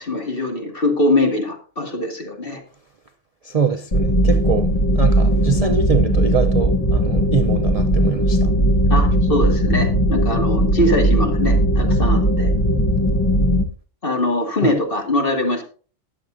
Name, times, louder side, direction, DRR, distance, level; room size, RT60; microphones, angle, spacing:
voice 1, 0.0-2.6 8.9-12.5 14.0-15.6, left 1 dB, 45° left, 2.3 m, -22 dB
voice 2, 3.4-8.5 14.6-14.8, right 5 dB, 40° right, 0.6 m, -23 dB
sound 1, 3.9-13.6, equal, 25° left, 1.0 m, -18 dB
21.0 x 7.1 x 2.6 m
omnidirectional pair, 1.3 m